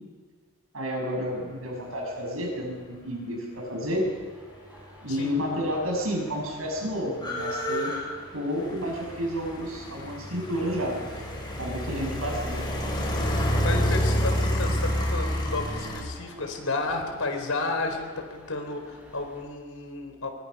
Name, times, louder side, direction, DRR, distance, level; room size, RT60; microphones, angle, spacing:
voice 1, 0.7-4.1 5.0-7.9 8.3-11.0 11.6-12.8, equal, 80° right, 0 dB, 6.6 m, -30 dB
sound 1, 3.6-19.4, equal, 5° right, 5.6 m, -51 dB
sound 2, 5.4-5.5 5.6-16.0, equal, 20° left, 4.7 m, -29 dB
voice 2, 13.6-20.3, left 3 dB, 90° left, 4 dB, 4.1 m, -32 dB
23.0 x 23.0 x 5.6 m, 1.5 s
head